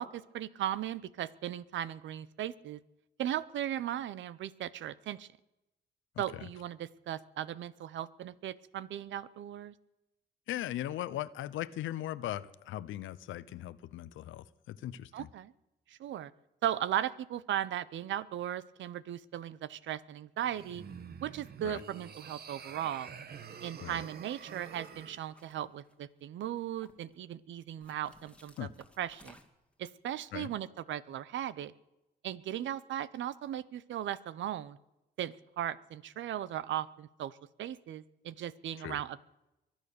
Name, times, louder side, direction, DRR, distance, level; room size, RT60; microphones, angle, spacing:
voice 1, 0.0-2.8 3.2-5.3 6.2-9.7 15.1-15.5 15.9-16.3 16.6-20.8 21.2-23.1 23.6-28.7 29.0-29.4 29.8-31.7 32.2-34.8 35.2-39.2, right 11 dB, 70° right, 18 dB, 0.7 m, -37 dB
voice 2, 10.5-15.3 21.6-21.8 23.8-24.0 28.6-28.7 30.3-30.5 38.8-39.0, left 13 dB, 80° left, 17 dB, 0.7 m, -39 dB
sound 1, 20.4-25.2, right 7 dB, 50° right, 1.2 m, -48 dB
sound 2, 23.9-24.2 24.7-26.2 26.6-27.2 27.8-29.7, left 1 dB, 5° left, 2.0 m, -60 dB
23.5 x 9.0 x 6.8 m, 0.95 s
cardioid pair, 90°, 20 cm